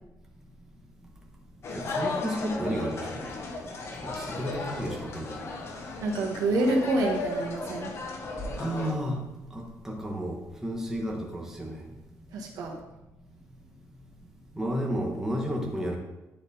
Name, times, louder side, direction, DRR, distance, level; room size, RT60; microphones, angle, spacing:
sound 1, 1.6-8.9, left 3 dB, 45° left, 0.8 m, -35 dB
voice 1, 1.7-3.3 4.0-5.4 8.6-9.2 9.5-11.8 14.6-16.0, equal, 5° right, -2 dB, 1.1 m, -32 dB
voice 2, 6.0-7.9 12.3-12.7, right 2 dB, 85° right, 0 dB, 1.4 m, -27 dB
10.5 x 3.9 x 4.1 m, 0.97 s
cardioid pair, 180°, 6 cm